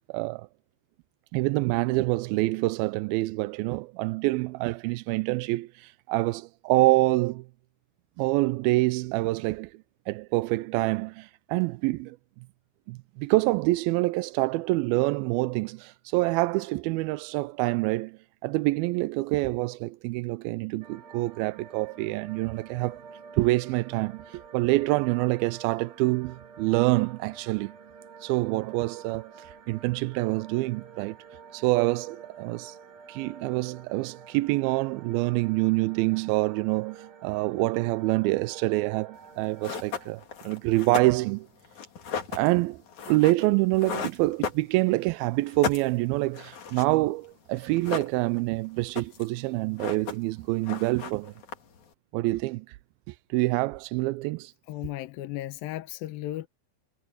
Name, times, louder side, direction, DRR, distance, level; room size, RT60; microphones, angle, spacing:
voice 1, 0.1-0.5 1.3-7.4 8.2-9.7 10.1-12.2 12.9-23.0 23.4-27.7 28.2-31.2 31.5-32.8 33.1-41.5 42.3-42.8 43.1-51.3 52.1-52.8 53.1-54.5, right 21 dB, 90° right, 2.4 m, -26 dB
sound 1, 20.8-40.1, right 6 dB, 50° right, 3.4 m, -50 dB
sound 2, 39.2-39.3 39.6-45.1 45.4-47.0 47.2-47.3 47.6-48.5 48.8-49.4 49.6-50.4 50.6-51.9, left 6 dB, 55° left, 3.9 m, -36 dB
voice 2, 54.7-56.5, left 15 dB, 80° left, 2.7 m, -35 dB
omnidirectional pair, 4.2 m